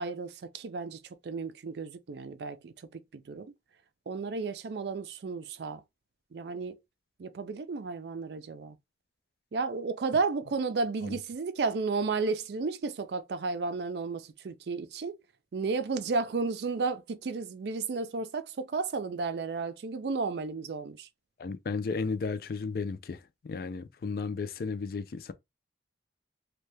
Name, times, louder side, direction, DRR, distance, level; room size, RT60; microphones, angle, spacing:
voice 1, 0.0-2.7 3.1-3.5 4.1-5.8 6.3-6.8 7.2-8.8 9.5-15.2 15.5-21.1, right 4 dB, 70° right, 0.4 m, -33 dB
voice 2, 21.4-23.2 23.5-25.3, left 4 dB, 55° left, 0.3 m, -34 dB
2.6 x 2.2 x 3.2 m
head